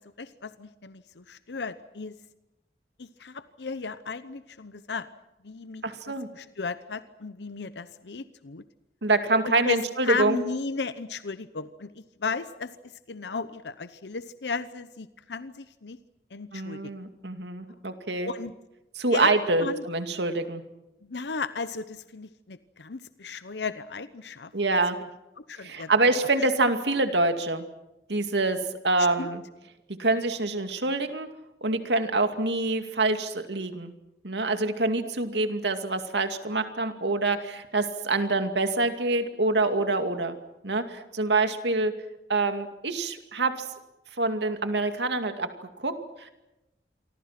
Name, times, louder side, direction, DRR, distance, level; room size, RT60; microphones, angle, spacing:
voice 1, 0.0-2.2 3.0-5.1 5.4-8.6 9.4-12.8 13.1-16.0 16.3-16.9 18.2-18.5 19.1-19.3 19.6-19.8 21.0-24.5 25.4-25.9 29.2-29.4, left 4 dB, 85° left, 13 dB, 0.9 m, -35 dB
voice 2, 5.8-6.3 9.0-10.4 16.5-18.3 19.0-20.6 24.5-25.0 25.6-27.7 28.1-29.4 30.0-31.3 31.6-33.9 34.2-40.4 40.6-41.9 42.3-43.7 44.2-45.5 45.8-46.3, right 2 dB, 85° right, 7 dB, 2.4 m, -26 dB
28.5 x 24.0 x 5.9 m, 0.96 s
head